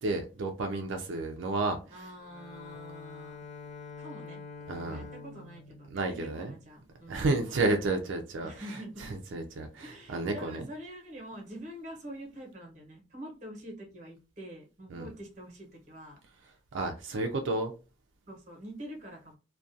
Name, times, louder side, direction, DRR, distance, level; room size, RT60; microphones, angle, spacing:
voice 1, 0.0-2.1 4.7-5.1 5.9-6.5 7.1-10.6 14.9-15.1 16.4-17.7, right 2 dB, 80° right, 0.4 m, -32 dB
voice 2, 1.9-3.4 4.0-4.4 4.9-7.3 8.4-9.1 9.8-16.2 18.3-19.3, equal, 40° right, 0.8 m, -45 dB
Bowed string instrument, 2.2-7.1, left 4 dB, 35° left, 0.4 m, -47 dB
2.4 x 2.2 x 2.6 m
head